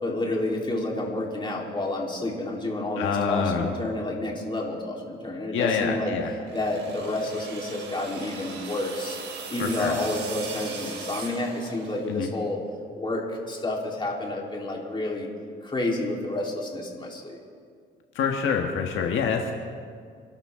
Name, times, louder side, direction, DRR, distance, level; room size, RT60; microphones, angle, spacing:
voice 1, 0.0-6.1 6.5-9.2 9.5-12.6 13.0-15.3 15.6-17.4, left 2 dB, 25° left, -2 dB, 3.7 m, -29 dB
voice 2, 3.0-3.7 5.5-6.3 9.6-10.0 12.1-12.3 18.1-19.5, left 6 dB, 80° left, 2 dB, 1.5 m, -26 dB
sound 1, 6.4-12.2, right 4 dB, 75° right, 3.2 m, -39 dB
28.0 x 12.5 x 3.7 m, 2.1 s
cardioid pair, 90°, 20 cm